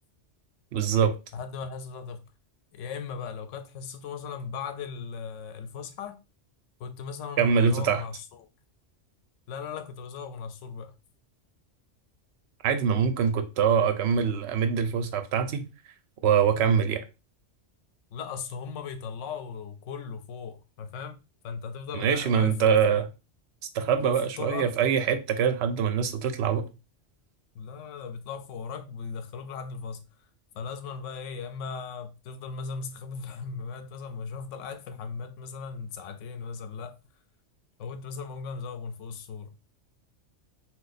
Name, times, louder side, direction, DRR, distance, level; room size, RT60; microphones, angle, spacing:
voice 1, 0.7-1.1 7.4-8.0 12.6-15.6 16.2-17.0 21.9-23.1 23.7-26.6, right 7 dB, 70° right, 0.8 m, -24 dB
voice 2, 1.3-2.2 2.7-6.2 6.8-8.5 9.5-10.9 18.1-21.2 21.4-23.0 24.0-24.7 27.5-30.0 30.5-37.0 37.8-39.5, left 5 dB, 80° left, 0.9 m, -38 dB
2.8 x 2.3 x 4.0 m
omnidirectional pair, 1.2 m